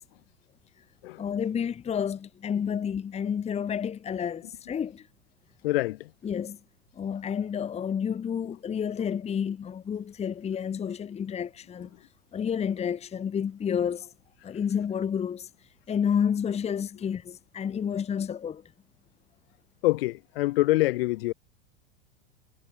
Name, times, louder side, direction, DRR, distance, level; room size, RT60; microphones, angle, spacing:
voice 1, 1.2-5.1 6.2-6.6 7.0-11.9 12.3-14.1 14.4-15.5 15.9-18.6, left 7 dB, 20° left, 1.1 m, -30 dB
voice 2, 5.6-6.1 19.8-21.3, left 19 dB, 60° left, 1.5 m, -25 dB
hypercardioid pair, 100°, 33 cm